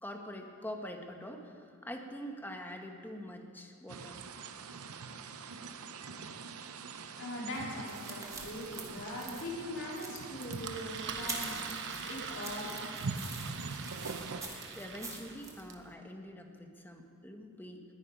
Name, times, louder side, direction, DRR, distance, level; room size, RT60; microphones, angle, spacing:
voice 1, 0.0-4.2 14.7-17.8, equal, 10° left, 3 dB, 1.1 m, -44 dB
sound 1, 3.9-14.4, right 4 dB, 75° right, 0.7 m, -43 dB
voice 2, 7.2-12.9, left 1 dB, 60° left, -4 dB, 3.3 m, -41 dB
sound 2, 7.5-15.6, right 2 dB, 15° right, 1.7 m, -46 dB
Engine, 10.6-15.9, right 6 dB, 55° right, 1.0 m, -43 dB
20.0 x 9.6 x 5.2 m, 2.4 s
head